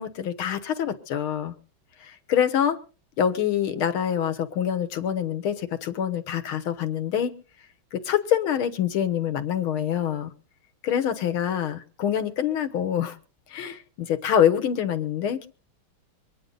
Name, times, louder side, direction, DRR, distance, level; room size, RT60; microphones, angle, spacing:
voice 1, 0.0-1.5 2.0-2.8 3.2-7.4 7.9-10.3 10.8-13.2 13.5-15.5, left 9 dB, 90° left, 2.1 m, -25 dB
24.5 x 9.6 x 4.0 m
omnidirectional pair, 2.2 m